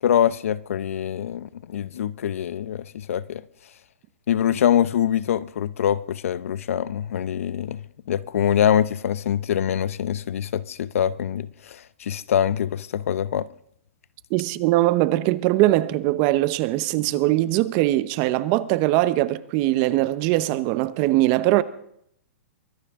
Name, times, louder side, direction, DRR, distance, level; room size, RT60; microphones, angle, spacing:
voice 1, 0.0-3.4 4.3-13.5, left 9 dB, 80° left, 0.7 m, -24 dB
voice 2, 14.3-21.6, right 16 dB, 35° right, 0.8 m, -21 dB
23.5 x 16.5 x 3.7 m
hypercardioid pair, 155°, 7 cm